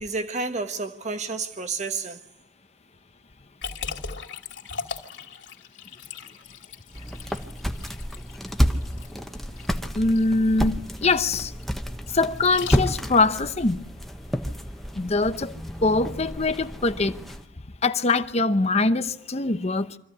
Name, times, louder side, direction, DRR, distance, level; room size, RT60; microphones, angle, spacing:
voice 1, 0.0-2.2 7.3-7.4, right 4 dB, 40° right, 1.2 m, -30 dB
Liquid, 3.6-13.3, left 6 dB, 75° left, 2.7 m, -39 dB
sound 1, 6.9-17.4, equal, ahead, 1.1 m, -30 dB
voice 2, 9.9-11.5 12.1-13.8 14.9-15.5 15.8-17.2 17.8-20.0, left 3 dB, 35° left, 0.8 m, -23 dB
25.0 x 15.0 x 9.8 m
head